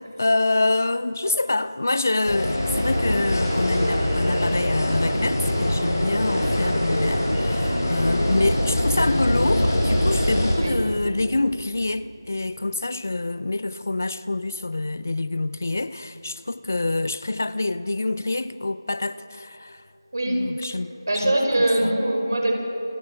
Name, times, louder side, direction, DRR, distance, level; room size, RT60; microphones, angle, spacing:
voice 1, 0.0-19.8 20.3-22.0, left 2 dB, 40° left, 0.5 m, -26 dB
sound 1, 2.3-10.6, left 1 dB, 55° left, 7.7 m, -23 dB
voice 2, 20.1-20.5 21.1-22.5, right 1 dB, 50° right, 5.5 m, -22 dB
28.0 x 18.5 x 7.0 m
figure-of-eight pair, 180°, 2 cm